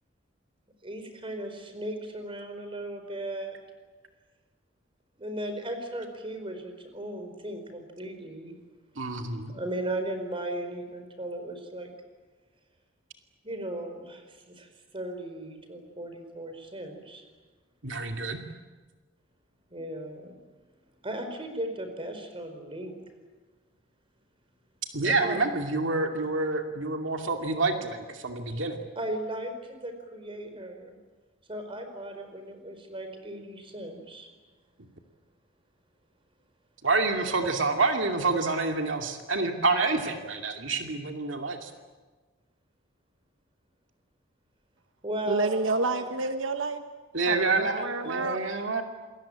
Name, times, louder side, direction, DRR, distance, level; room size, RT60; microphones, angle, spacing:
voice 1, 0.8-3.6 5.2-8.5 9.5-11.9 13.4-14.7 14.9-17.2 19.7-20.4 21.0-22.9 25.0-25.4 28.9-31.0 31.5-34.3 45.0-46.1 47.6-48.5, right 1 dB, 30° right, 7 dB, 4.6 m, -36 dB
voice 2, 9.0-9.5 17.8-18.4 24.9-28.9 36.8-41.7 47.1-48.8, right 3 dB, 70° right, 4 dB, 2.5 m, -28 dB
voice 3, 45.3-46.8 47.3-48.4, right 3 dB, 90° right, 8 dB, 1.2 m, -29 dB
28.0 x 21.5 x 8.8 m, 1.3 s
head